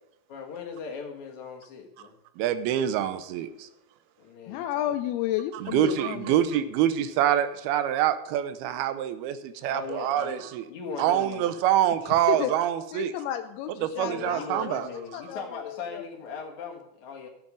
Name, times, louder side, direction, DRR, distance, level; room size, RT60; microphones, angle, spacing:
voice 1, 0.3-2.1 4.2-4.9 9.6-11.5 14.0-17.3, left 5 dB, 55° left, 1 dB, 2.8 m, -39 dB
voice 2, 2.4-3.7 5.5-10.7 11.0-13.1 13.8-14.9, right 11 dB, 85° right, 12 dB, 2.7 m, -26 dB
voice 3, 4.5-6.4 12.1-12.5 12.9-14.8 15.1-16.0, left 12 dB, 85° left, 7 dB, 2.6 m, -32 dB
12.5 x 8.1 x 5.1 m, 0.86 s
omnidirectional pair, 4.5 m